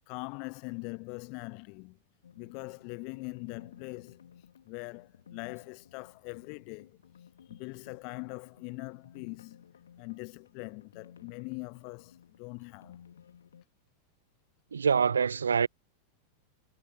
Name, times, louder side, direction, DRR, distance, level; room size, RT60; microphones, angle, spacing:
voice 1, 0.1-2.0 2.4-4.2 4.7-7.0 7.5-9.6 10.0-13.0, left 35 dB, 45° left, 0.8 m, -42 dB
sound 1, 2.2-13.6, left 8 dB, 65° left, 2.2 m, -56 dB
voice 2, 14.7-15.7, right 6 dB, 70° right, 0.4 m, -25 dB
figure-of-eight pair, 90°, 0 cm